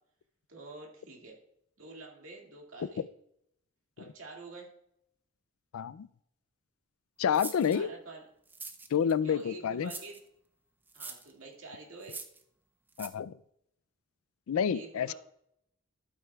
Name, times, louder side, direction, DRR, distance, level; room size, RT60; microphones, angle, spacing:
voice 1, 0.5-1.4 1.8-3.0 4.0-4.7 7.7-8.3 9.2-10.2 10.9-12.2 14.7-15.1, right 3 dB, 70° right, 0 dB, 2.2 m, -47 dB
voice 2, 5.7-6.1 7.2-7.9 8.9-9.9 13.0-13.3 14.5-15.1, left 7 dB, 80° left, 18 dB, 0.4 m, -28 dB
sound 1, 7.3-7.8 8.5-9.1 9.9-10.2 10.9-11.3 12.0-12.4 12.9-13.1, right 3 dB, 10° right, 0.4 m, -43 dB
12.5 x 8.7 x 2.3 m, 0.74 s
head